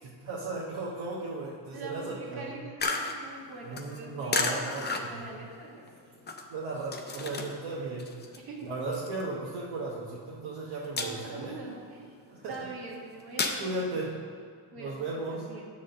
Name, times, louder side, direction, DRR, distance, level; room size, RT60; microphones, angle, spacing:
voice 1, 0.0-2.5 3.6-5.3 6.5-8.1 8.6-11.8 12.3-12.5 13.6-14.1 14.8-15.5, right 2 dB, 65° right, -4 dB, 1.1 m, -36 dB
voice 2, 1.7-5.8 8.4-8.7 11.0-12.2 12.5-14.0 14.7-15.7, right 3 dB, 50° right, -2 dB, 1.7 m, -43 dB
sound 1, 2.8-7.7 8.0-9.9 10.2-10.5 10.8-11.5 11.9-13.6, left 3 dB, 20° left, 0.5 m, -33 dB
8.9 x 3.7 x 6.4 m, 2.2 s
cardioid pair, 145°, 48 cm